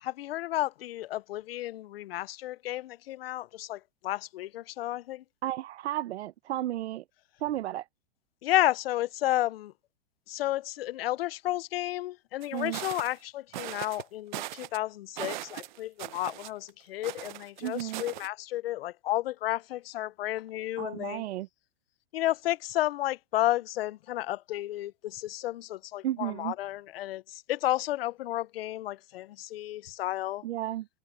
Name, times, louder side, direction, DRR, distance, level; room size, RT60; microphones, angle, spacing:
voice 1, 0.0-5.2 8.4-9.7 10.3-21.2 22.1-30.4, left 15 dB, 60° left, 0.6 m, -32 dB
voice 2, 5.4-7.0 7.4-7.9 12.5-12.8 17.6-18.0 20.8-21.5 26.0-26.5 30.4-30.9, right 13 dB, 80° right, 0.8 m, -33 dB
sound 1, 12.4-13.2 13.5-14.0 14.3-14.8 15.2-16.7 17.0-18.3, right 16 dB, 45° right, 0.7 m, -39 dB
supercardioid pair, 170°, 33 cm